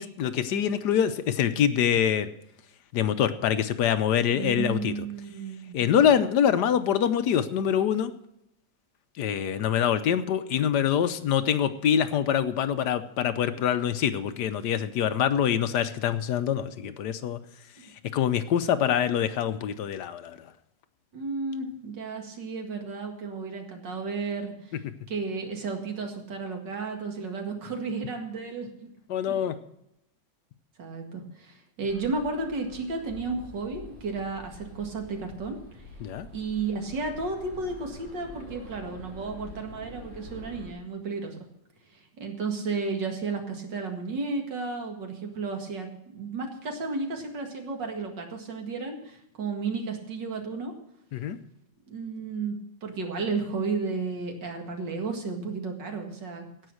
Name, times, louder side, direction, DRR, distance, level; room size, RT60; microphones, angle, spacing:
voice 1, 0.0-2.3 2.9-5.1 5.7-8.1 9.2-17.4 18.1-20.5 29.1-29.6 36.0-36.3 51.1-51.4, left 9 dB, 70° left, 11 dB, 1.3 m, -25 dB
voice 2, 4.4-5.8 21.1-24.8 25.1-28.9 29.3-29.4 30.8-35.8 36.3-41.4 41.9-45.9 46.1-50.7 51.9-56.5, right 4 dB, 75° right, 3 dB, 2.6 m, -33 dB
sound 1, 31.9-40.7, left 1 dB, 50° left, 5.2 m, -46 dB
17.0 x 5.7 x 6.3 m, 0.79 s
omnidirectional pair, 1.9 m